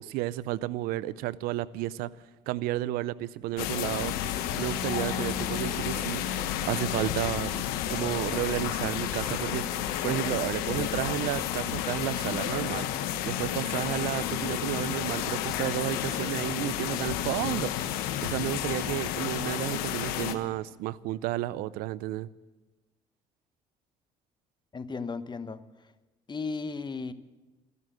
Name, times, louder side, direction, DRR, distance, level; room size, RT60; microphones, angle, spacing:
voice 1, 0.0-2.1 2.5-4.1 4.6-6.2 6.6-7.5 7.9-9.6 10.0-12.9 13.2-17.7 18.2-22.3, right 15 dB, 80° right, 0.5 m, -32 dB
sound 1, 3.6-20.3, left 10 dB, 85° left, 1.1 m, -31 dB
voice 2, 24.7-25.9 26.3-27.1, left 4 dB, 30° left, 1.0 m, -35 dB
15.0 x 11.0 x 7.7 m
supercardioid pair, 75°, 15 cm